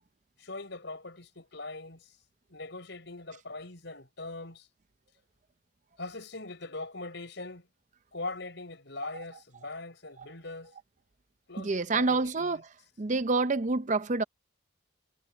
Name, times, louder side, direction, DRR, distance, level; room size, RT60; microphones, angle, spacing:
voice 1, 0.4-2.1 2.5-4.7 6.0-7.7 8.1-10.7 11.5-12.6, left 2 dB, 60° left, 6.8 m, -41 dB
voice 2, 11.6-12.6 13.0-14.2, right 3 dB, 35° right, 0.5 m, -28 dB
head